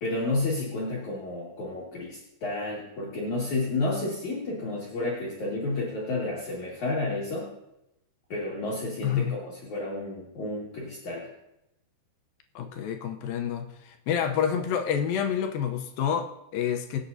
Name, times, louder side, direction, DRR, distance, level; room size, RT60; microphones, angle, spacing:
voice 1, 0.0-7.5 8.3-11.3, left 2 dB, 50° left, -5 dB, 3.0 m, -31 dB
voice 2, 9.0-9.4 12.6-17.0, left 8 dB, 75° left, 5 dB, 2.3 m, -28 dB
25.0 x 8.4 x 2.7 m, 0.85 s
omnidirectional pair, 4.8 m